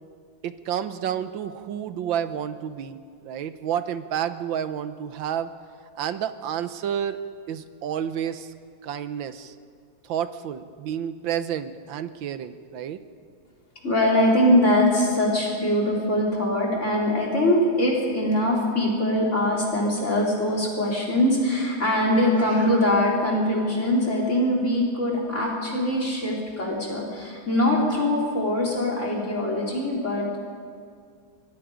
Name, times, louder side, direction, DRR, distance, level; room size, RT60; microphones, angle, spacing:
voice 1, 0.4-3.0 3.2-5.5 5.9-7.2 7.5-8.5 8.8-9.5 10.0-13.0, right 9 dB, 75° right, 11 dB, 1.6 m, -30 dB
voice 2, 13.8-30.4, left 1 dB, 35° left, -2 dB, 4.5 m, -22 dB
24.5 x 21.0 x 5.1 m, 2.2 s
omnidirectional pair, 2.2 m